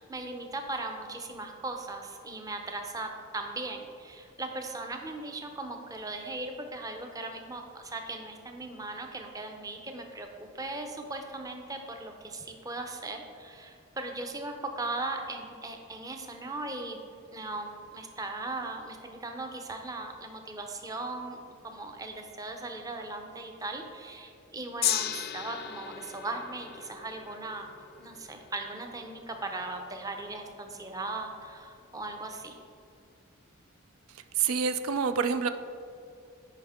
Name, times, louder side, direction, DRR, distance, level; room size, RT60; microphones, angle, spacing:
voice 1, 0.0-27.7 28.0-32.6, right 2 dB, 15° right, 4 dB, 0.6 m, -38 dB
Gong, 24.8-31.2 32.0-32.1, left 11 dB, 50° left, 0.4 m, -37 dB
voice 2, 34.4-35.5, right 6 dB, 85° right, 10 dB, 0.4 m, -27 dB
10.0 x 5.1 x 3.6 m, 2.4 s
head